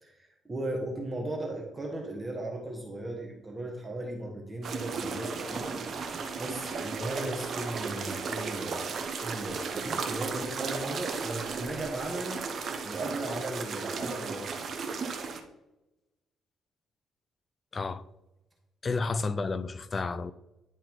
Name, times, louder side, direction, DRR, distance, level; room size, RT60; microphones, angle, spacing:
voice 1, 0.0-12.4 12.8-14.6 18.9-19.0, right 1 dB, 20° right, 1.3 m, -37 dB
sound 1, 4.6-15.4, right 5 dB, 50° right, 1.0 m, -35 dB
voice 2, 17.7-18.0 18.8-20.3, left 4 dB, 30° left, 0.4 m, -31 dB
10.5 x 3.9 x 4.5 m
cardioid pair, 125°, 0 cm